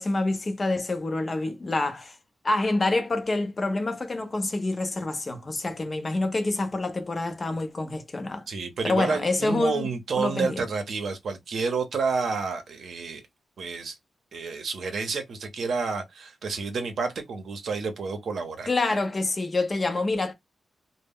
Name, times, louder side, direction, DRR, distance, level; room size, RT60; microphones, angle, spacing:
voice 1, 0.0-2.2 2.4-8.5 8.8-9.9 10.2-10.6 18.7-20.3, left 2 dB, 30° left, 0.6 m, -27 dB
voice 2, 8.5-13.2 13.6-14.0 14.3-18.7, right 4 dB, 65° right, 0.6 m, -29 dB
2.0 x 2.0 x 3.5 m
wide cardioid pair, 120°, 0 cm